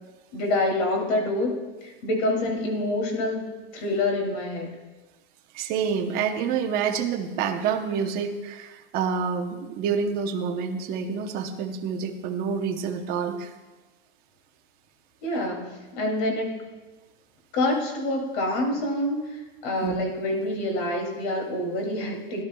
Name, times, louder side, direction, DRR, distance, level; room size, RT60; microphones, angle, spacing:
voice 1, 0.3-1.6 1.8-4.7 15.2-16.5 17.5-22.4, left 1 dB, 50° left, 2 dB, 2.6 m, -27 dB
voice 2, 5.5-13.5 19.8-20.0, right 6 dB, 30° right, 4 dB, 0.9 m, -28 dB
17.5 x 11.0 x 2.3 m, 1.2 s
supercardioid pair, 160°, 31 cm